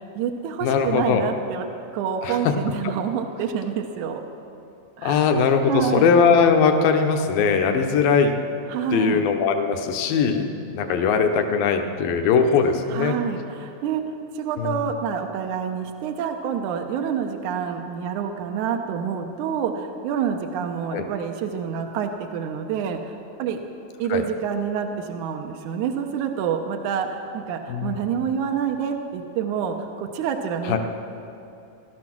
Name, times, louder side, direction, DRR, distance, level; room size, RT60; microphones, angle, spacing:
voice 1, 0.0-1.7 1.9-4.2 5.0-5.3 5.6-6.1 8.7-9.2 12.9-14.0 14.3-23.6 24.0-30.8, right 7 dB, 75° right, 4 dB, 1.9 m, -27 dB
voice 2, 0.6-1.3 2.2-2.5 5.0-8.3 8.9-13.1 14.6-14.8 20.9-21.0 24.1-24.2 27.7-28.0 30.7-30.8, left 6 dB, 75° left, 5 dB, 2.6 m, -20 dB
18.0 x 12.5 x 6.1 m, 2.7 s
omnidirectional pair, 4.3 m